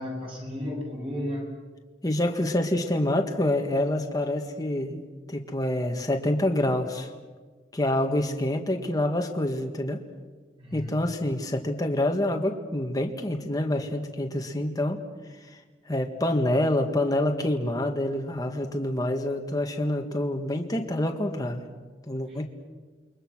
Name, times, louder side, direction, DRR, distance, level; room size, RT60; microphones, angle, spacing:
voice 1, 0.0-1.5 10.6-11.0 22.3-22.4, left 1 dB, 30° right, -1 dB, 7.7 m, -34 dB
voice 2, 2.0-7.1 7.7-10.0 10.7-15.0 15.9-21.7 22.1-22.5, left 1 dB, 20° left, 3 dB, 1.8 m, -27 dB
29.0 x 23.0 x 6.3 m, 1.4 s
head